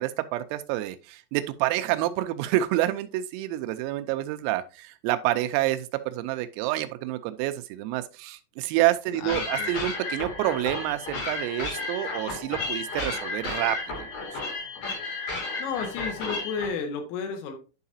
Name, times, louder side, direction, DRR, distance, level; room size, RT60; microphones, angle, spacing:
voice 1, 0.0-14.3, right 14 dB, 90° right, 3.4 m, -28 dB
voice 2, 9.2-9.7 15.6-17.6, left 6 dB, 85° left, 4.0 m, -32 dB
sound 1, 9.3-16.7, left 3 dB, 50° left, 3.8 m, -33 dB
11.0 x 4.8 x 2.7 m
omnidirectional pair, 5.9 m